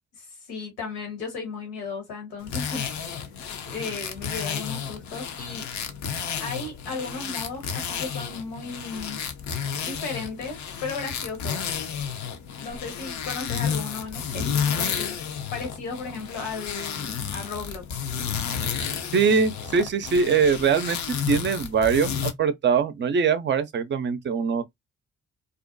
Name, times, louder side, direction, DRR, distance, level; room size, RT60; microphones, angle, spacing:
voice 1, 0.1-2.9 3.7-5.7 6.4-9.2 9.8-11.6 12.6-15.2 15.5-17.9, left 4 dB, 80° left, 1.2 m, -35 dB
sound 1, 2.4-22.3, left 7 dB, 55° left, 0.6 m, -31 dB
voice 2, 19.1-21.0 21.3-24.8, right 6 dB, 35° right, 0.5 m, -22 dB
2.4 x 2.1 x 2.5 m
hypercardioid pair, 45°, 33 cm